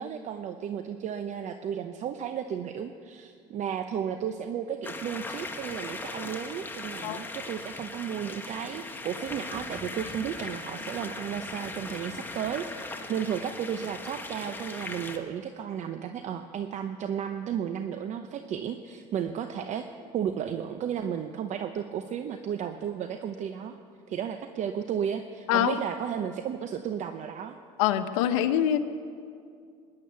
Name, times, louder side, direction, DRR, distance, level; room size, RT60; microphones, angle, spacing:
voice 1, 0.0-19.9 20.1-23.8 24.1-27.6, right 8 dB, 50° right, 8 dB, 0.8 m, -33 dB
sound 1, 4.8-15.2, left 3 dB, 10° left, 1.4 m, -39 dB
voice 2, 27.8-28.8, left 11 dB, 85° left, 9 dB, 1.0 m, -24 dB
18.5 x 11.0 x 6.9 m, 2.3 s
supercardioid pair, 100°, 16 cm